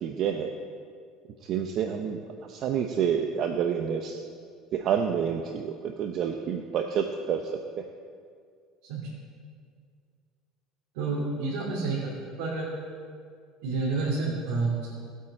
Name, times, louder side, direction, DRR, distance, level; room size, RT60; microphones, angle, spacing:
voice 1, 0.0-0.5 1.5-2.2 2.5-4.2 4.7-7.4, right 8 dB, 40° right, 4 dB, 0.7 m, -28 dB
voice 2, 10.9-12.7 13.6-14.9, right 3 dB, 90° right, -7 dB, 2.9 m, -29 dB
18.5 x 8.5 x 4.4 m, 2.2 s
cardioid pair, 170°, 0 cm